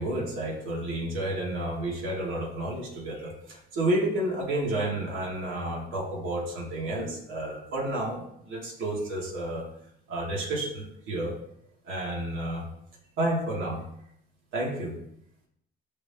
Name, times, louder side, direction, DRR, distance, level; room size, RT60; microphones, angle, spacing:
voice 1, 0.0-9.6 10.1-11.4 11.8-12.6 13.2-13.8 14.5-15.0, right 1 dB, 90° right, -3 dB, 2.6 m, -31 dB
14.5 x 5.1 x 2.9 m, 0.73 s
cardioid pair, 90°, 20 cm